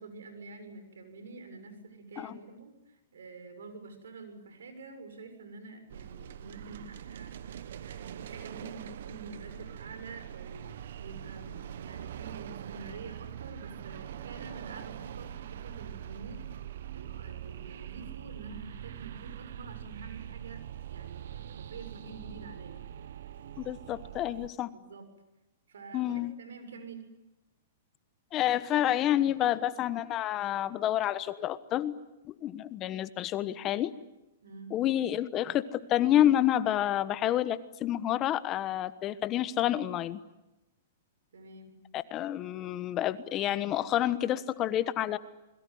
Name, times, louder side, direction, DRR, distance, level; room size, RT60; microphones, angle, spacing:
voice 1, 0.0-16.5 16.9-20.6 20.9-22.8 24.2-24.4 24.7-25.0 25.7-27.1 34.4-34.7 41.3-41.7, right 3 dB, 90° right, 8 dB, 6.9 m, -47 dB
sound 1, 5.9-24.5, right 10 dB, 70° right, 1.2 m, -43 dB
voice 2, 23.6-24.7 25.9-26.3 28.3-31.9 32.4-33.9 34.7-40.2 41.9-45.2, left 12 dB, 30° left, 14 dB, 1.3 m, -29 dB
28.0 x 21.5 x 9.6 m, 0.97 s
hypercardioid pair, 140°, 0 cm